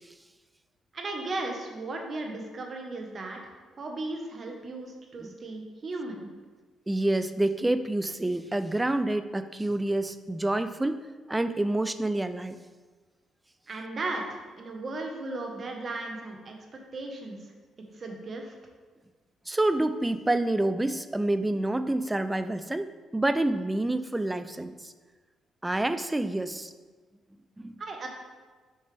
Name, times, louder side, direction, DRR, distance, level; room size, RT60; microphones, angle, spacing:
voice 1, 0.9-6.3 13.7-16.6 16.9-17.5 17.9-18.5 27.8-28.1, right 2 dB, 45° right, 2 dB, 1.1 m, -36 dB
voice 2, 6.9-12.6 19.5-24.9 25.6-26.7 27.6-27.8, right 1 dB, 15° right, 11 dB, 0.4 m, -28 dB
6.6 x 5.4 x 3.4 m, 1.4 s
cardioid pair, 90°, 0 cm